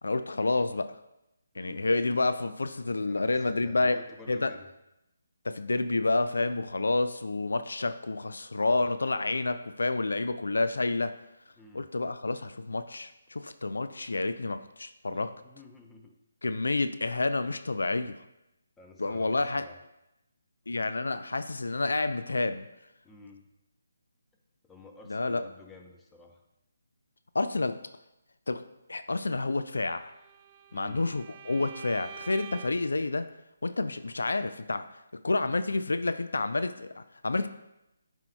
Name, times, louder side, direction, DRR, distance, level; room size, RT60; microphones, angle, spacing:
voice 1, 0.0-1.0 1.6-4.0 4.3-4.5 5.4-11.1 11.7-15.3 16.4-18.2 19.0-19.6 20.7-22.7 25.1-25.4 27.3-27.8 28.5-28.6 28.9-30.1 30.7-33.3 33.6-34.9 35.2-37.5, left 3 dB, 70° left, 10 dB, 0.3 m, -29 dB
voice 2, 1.5-1.9 3.1-4.7 11.6-11.9 15.1-16.1 18.8-19.8 23.0-23.5 24.6-26.4 30.7-31.1, left 3 dB, 10° left, 2 dB, 0.7 m, -51 dB
Bowed string instrument, 29.9-33.0, right 8 dB, 30° right, 0.4 m, -47 dB
10.5 x 4.5 x 2.3 m, 0.90 s
figure-of-eight pair, 145°, 0 cm